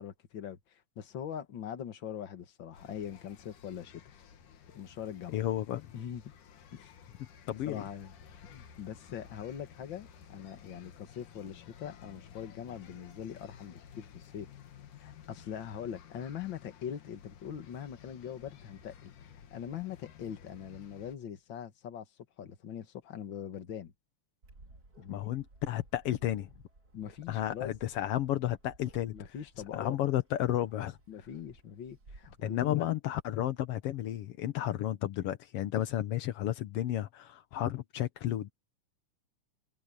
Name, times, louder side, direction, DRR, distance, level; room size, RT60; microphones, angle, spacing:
voice 1, 0.0-4.0 4.7-5.4 5.9-6.3 6.7-6.9 7.6-8.1 8.4-14.5 15.0-22.0 22.4-23.9 25.0-25.3 26.9-27.7 29.1-30.0 31.1-32.9, left 9 dB, 50° left, 1.6 m, -42 dB
sound 1, 2.7-21.2, left 8 dB, 65° left, 3.2 m, -54 dB
voice 2, 5.3-5.9 7.5-7.8 25.1-26.5 27.3-29.1 29.7-31.0 32.4-38.5, left 13 dB, 85° left, 1.3 m, -32 dB
Bark, 24.4-32.4, right 2 dB, 25° right, 3.8 m, -58 dB
omnidirectional pair, 3.9 m